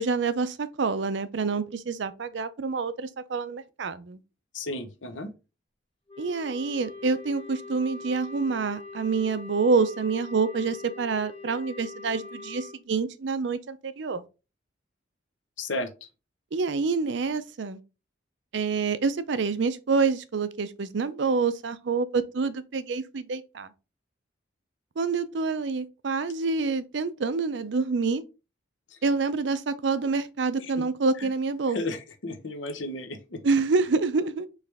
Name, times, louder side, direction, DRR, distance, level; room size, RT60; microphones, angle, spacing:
voice 1, 0.0-4.2 6.2-14.2 16.5-17.8 18.5-23.7 25.0-28.2 29.0-31.8 33.4-34.5, right 4 dB, 65° right, 0.5 m, -27 dB
voice 2, 4.5-5.3 15.6-15.9 31.7-33.4, left 2 dB, 80° left, 0.8 m, -33 dB
Wind instrument woodwind instrument, 6.1-12.8, left 3 dB, 30° left, 1.0 m, -43 dB
4.8 x 3.2 x 3.4 m
head